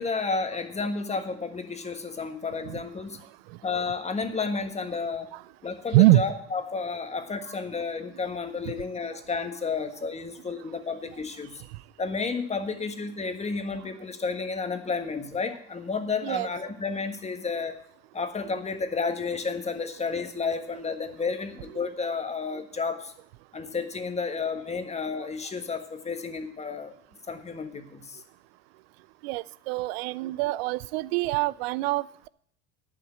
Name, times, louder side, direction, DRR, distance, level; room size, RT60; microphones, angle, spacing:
voice 1, 0.0-3.2 3.6-5.3 5.6-11.6 12.0-17.8 18.1-23.1 23.5-26.9 27.3-28.2, left 4 dB, 20° left, 6 dB, 1.5 m, -31 dB
voice 2, 29.2-32.3, right 17 dB, 65° right, 20 dB, 0.5 m, -24 dB
10.5 x 5.6 x 7.9 m, 0.62 s
hypercardioid pair, 80°, 32 cm